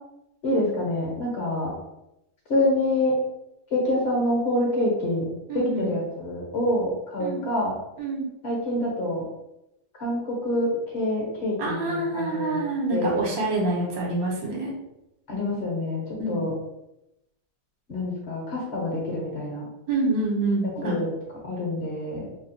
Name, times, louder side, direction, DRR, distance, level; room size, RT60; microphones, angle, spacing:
voice 1, 0.4-1.7 2.5-3.2 3.7-5.3 5.5-7.8 8.4-9.2 10.0-12.6 12.9-13.2 15.3-16.5 17.9-19.7 20.8-21.1 21.4-22.3, left 1 dB, 45° left, -2 dB, 1.0 m, -26 dB
voice 2, 5.5-5.9 7.2-7.4 8.0-8.3 11.6-14.7 16.2-16.4 19.9-21.0, right 2 dB, 60° right, -2 dB, 1.3 m, -26 dB
2.9 x 2.2 x 4.1 m, 0.87 s
omnidirectional pair, 1.8 m